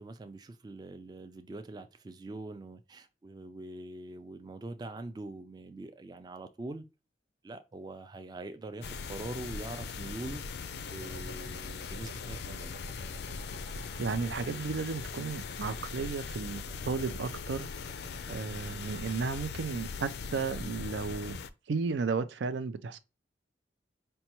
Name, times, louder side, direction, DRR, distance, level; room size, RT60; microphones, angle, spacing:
voice 1, 0.0-6.8 7.4-12.8, right 2 dB, 25° right, 0.3 m, -43 dB
sound 1, 8.8-21.5, left 5 dB, 65° left, 0.3 m, -40 dB
sound 2, 10.9-19.4, right 4 dB, 75° right, 1.1 m, -55 dB
voice 2, 14.0-17.7 18.3-21.4 21.7-23.0, right 4 dB, 90° right, 0.4 m, -34 dB
5.3 x 2.2 x 2.9 m
head